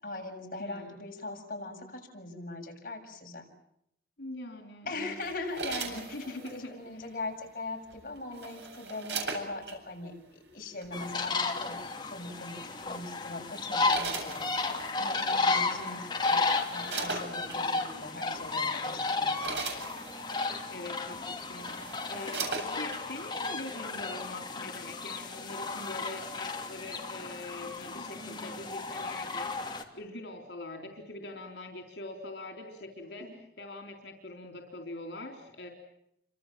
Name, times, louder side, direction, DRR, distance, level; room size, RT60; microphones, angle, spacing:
voice 1, 0.0-3.5 4.9-16.4 16.7-19.7 27.9-28.6 33.0-33.4, left 2 dB, 50° left, 2 dB, 7.6 m, -41 dB
voice 2, 0.6-1.0 4.2-5.1 5.8-7.2 15.7-16.0 20.7-33.2 33.6-35.7, left 2 dB, 80° left, 3 dB, 4.0 m, -43 dB
sound 1, 5.2-6.6 7.9-9.8 10.8-11.1 12.7-13.0 13.5-14.9 15.7-15.8 16.1-17.6 18.3-18.5 18.9-20.4 21.1-21.2 21.5-23.0 23.4-23.5, right 4 dB, 85° right, 7.8 m, -39 dB
sound 2, 10.9-29.8, left 3 dB, 25° left, 3.1 m, -33 dB
29.5 x 26.0 x 7.7 m, 0.77 s
head